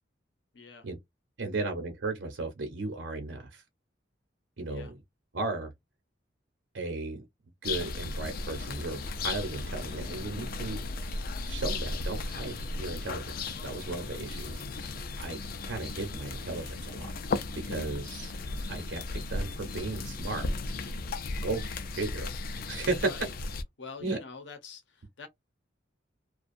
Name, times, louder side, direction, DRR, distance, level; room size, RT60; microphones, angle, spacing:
voice 1, 0.5-0.9 4.7-4.9 23.0-23.3 23.8-25.3, left 4 dB, 75° left, 0.8 m, -45 dB
voice 2, 1.4-3.6 4.6-4.9 5.3-5.7 6.7-7.3 7.6-10.8 11.4-14.6 14.9-17.4 17.6-18.3 18.7-20.5 21.4-23.1 24.0-24.2, right 3 dB, 85° right, 0.8 m, -35 dB
sound 1, 7.6-23.6, left 3 dB, 50° left, 0.4 m, -36 dB
2.5 x 2.3 x 2.5 m
head